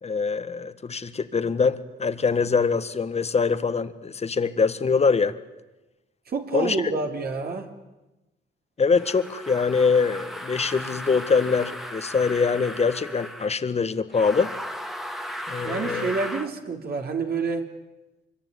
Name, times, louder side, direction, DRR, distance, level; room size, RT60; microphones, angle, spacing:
voice 1, 0.0-5.4 6.5-6.8 8.8-14.5 15.5-16.1, left 5 dB, 30° left, 12 dB, 1.6 m, -23 dB
voice 2, 6.3-7.7 15.6-17.7, right 4 dB, 50° right, 3 dB, 3.5 m, -28 dB
sound 1, 8.9-13.6 14.1-16.5, equal, ahead, 2.0 m, -36 dB
25.0 x 23.0 x 9.8 m, 1.0 s
cardioid pair, 90°, 20 cm